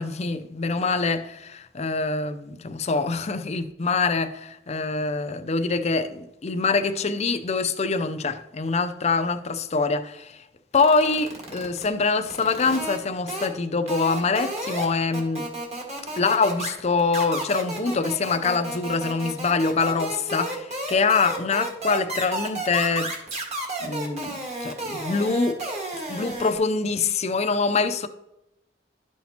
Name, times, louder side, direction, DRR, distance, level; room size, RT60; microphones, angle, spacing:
voice 1, 0.0-10.4 10.7-15.4 16.2-23.1 23.8-25.6 26.1-28.1, left 4 dB, 35° left, 0.5 m, -24 dB
sound 1, 10.7-11.9 12.3-13.0 13.3-13.5 13.9-14.8 15.1-26.6, right 1 dB, 35° right, 1.7 m, -32 dB
11.5 x 5.9 x 2.9 m
head